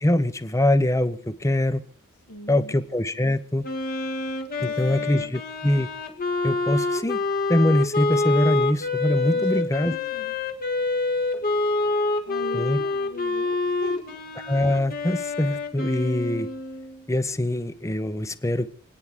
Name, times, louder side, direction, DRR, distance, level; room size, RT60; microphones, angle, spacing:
voice 1, 0.0-1.8 2.5-3.7 4.6-5.9 6.4-7.2 7.5-9.9 12.5-12.8 14.5-16.5 17.1-18.7, left 1 dB, 15° left, 13 dB, 0.8 m, -23 dB
voice 2, 2.3-2.8 4.6-5.4 9.2-10.4 12.3-14.2, left 1 dB, 70° left, 4 dB, 2.5 m, -41 dB
Wind instrument woodwind instrument, 3.6-17.0, left 3 dB, 45° left, 1.6 m, -27 dB
29.0 x 9.7 x 3.7 m, 0.41 s
head